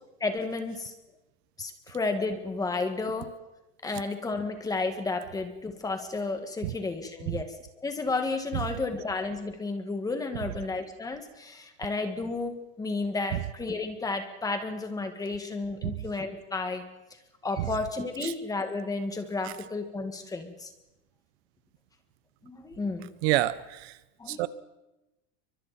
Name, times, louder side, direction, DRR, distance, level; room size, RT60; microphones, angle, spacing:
voice 1, 0.2-0.9 1.6-3.3 3.8-7.5 7.8-16.8 17.4-20.7 22.4-23.1 24.2-24.5, left 3 dB, 10° left, 6 dB, 2.0 m, -32 dB
voice 2, 23.2-24.0 24.3-24.5, right 17 dB, 65° right, 16 dB, 1.0 m, -28 dB
29.5 x 24.0 x 4.4 m, 1.0 s
supercardioid pair, 165°, 34 cm